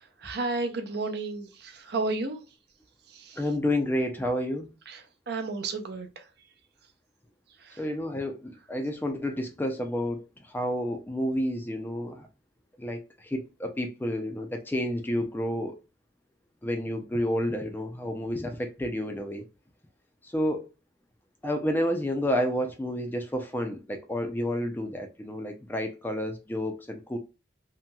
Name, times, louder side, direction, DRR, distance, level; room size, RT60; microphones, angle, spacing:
voice 1, 0.2-2.4 3.1-3.4 4.9-6.2 7.6-7.8, right 3 dB, 60° right, 0.6 m, -32 dB
voice 2, 3.4-4.7 7.8-12.3 12.8-15.7 16.6-19.5 20.2-20.6 21.4-27.2, left 1 dB, 10° left, 0.4 m, -30 dB
2.8 x 2.8 x 2.2 m
head